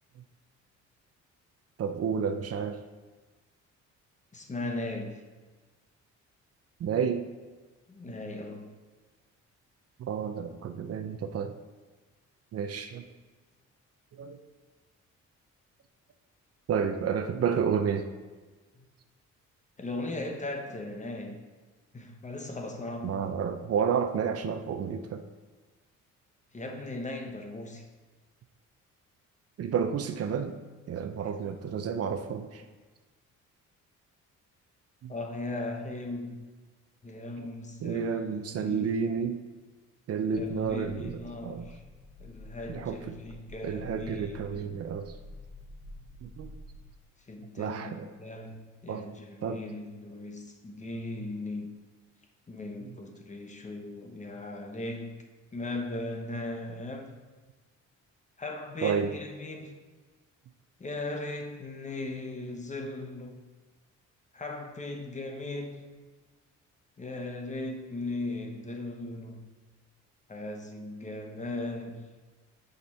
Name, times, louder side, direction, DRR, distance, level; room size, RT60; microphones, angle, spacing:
voice 1, 1.8-2.8 6.8-7.2 10.0-11.5 12.5-13.0 14.1-14.4 16.7-18.1 23.0-25.2 29.6-30.6 30.9-32.6 35.0-35.1 37.4-37.5 37.8-39.4 40.1-41.7 42.7-43.0 43.6-45.2 46.2-46.5 47.6-48.1 48.9-49.2 49.4-49.6 58.8-59.1, right 7 dB, 55° right, 8 dB, 0.6 m, -30 dB
voice 2, 4.3-5.2 7.9-8.7 18.7-18.8 19.8-21.4 21.9-23.2 26.5-27.9 35.1-36.5 37.0-39.2 40.3-41.8 42.2-44.8 47.3-51.7 52.5-55.2 55.5-57.2 58.4-59.8 60.8-63.4 64.3-65.9 67.0-69.5 70.3-72.1, left 2 dB, 25° left, 3 dB, 0.9 m, -38 dB
sound 1, 40.3-46.8, left 1 dB, 85° left, 1.4 m, -49 dB
6.8 x 5.2 x 4.2 m, 1.3 s
cardioid pair, 90°, 30 cm